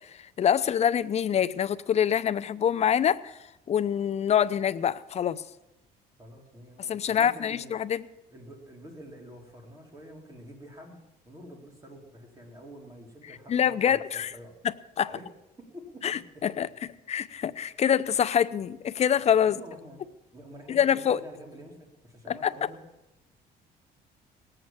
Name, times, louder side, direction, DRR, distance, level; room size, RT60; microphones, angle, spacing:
voice 1, 0.4-3.3 3.7-5.4 6.9-8.0 13.5-14.3 15.0-15.1 16.0-16.7 17.1-19.6 20.7-21.2 22.3-22.5, left 9 dB, 40° left, 14 dB, 0.6 m, -25 dB
voice 2, 6.2-7.7 8.3-14.6 15.1-15.2 15.6-16.4 19.4-20.0 20.3-22.8, equal, 20° right, 0 dB, 3.4 m, -47 dB
18.5 x 7.9 x 7.4 m, 0.96 s
cardioid pair, 110°, 17 cm